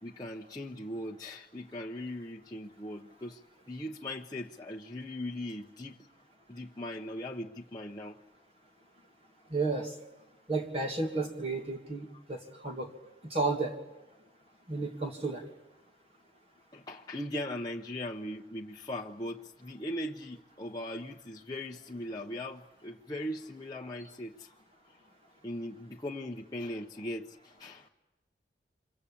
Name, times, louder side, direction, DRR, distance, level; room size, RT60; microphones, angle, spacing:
voice 1, 0.0-3.4 3.7-6.0 6.5-8.2 12.1-12.2 16.7-24.6 24.8-25.0 25.4-27.9, left 1 dB, 20° left, -1 dB, 1.0 m, -39 dB
voice 2, 9.5-10.0 10.5-12.9 13.2-13.8 14.7-15.5, right 3 dB, 35° right, 1 dB, 1.9 m, -32 dB
28.5 x 24.0 x 8.6 m, 1.1 s
head